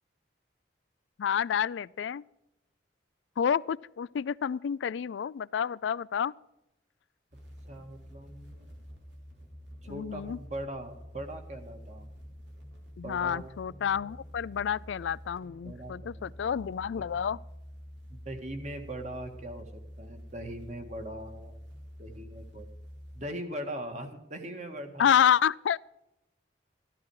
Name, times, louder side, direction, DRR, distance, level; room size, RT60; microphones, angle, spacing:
voice 1, 1.2-2.2 3.4-6.3 9.9-10.4 13.0-17.4 25.0-25.9, left 8 dB, 85° left, 0.4 m, -29 dB
sound 1, 7.3-23.2, equal, 80° right, 3.2 m, -48 dB
voice 2, 7.6-8.8 9.8-12.1 13.0-13.5 15.6-17.2 18.1-21.6 22.0-22.7 23.1-25.1, right 1 dB, 40° right, 1.8 m, -41 dB
14.0 x 12.5 x 4.8 m
head